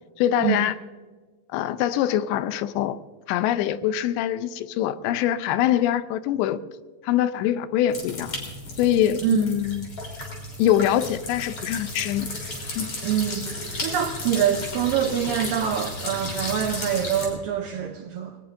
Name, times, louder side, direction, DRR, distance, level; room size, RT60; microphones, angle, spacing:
voice 1, 0.2-0.7 1.5-3.0 3.3-6.6 7.0-8.4 8.8-9.9 10.6-12.3 12.8-12.9, left 11 dB, 85° left, 13 dB, 2.8 m, -23 dB
sound 1, 7.9-17.3, left 2 dB, 35° left, 4.0 m, -34 dB
voice 2, 9.2-9.5 13.0-13.5 13.8-18.4, right 9 dB, 85° right, 5 dB, 2.0 m, -25 dB
20.5 x 19.0 x 2.6 m, 1.4 s
omnidirectional pair, 4.9 m